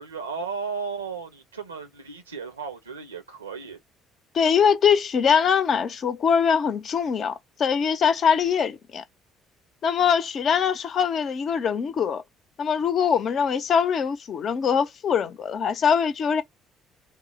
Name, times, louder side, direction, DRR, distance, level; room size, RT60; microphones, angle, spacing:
voice 1, 0.0-3.8, right 5 dB, 90° right, 0.8 m, -34 dB
voice 2, 4.3-7.3 7.6-9.0 9.8-12.2 12.6-16.4, left 7 dB, 50° left, 0.6 m, -22 dB
3.6 x 2.1 x 4.0 m
figure-of-eight pair, 50°, 0 cm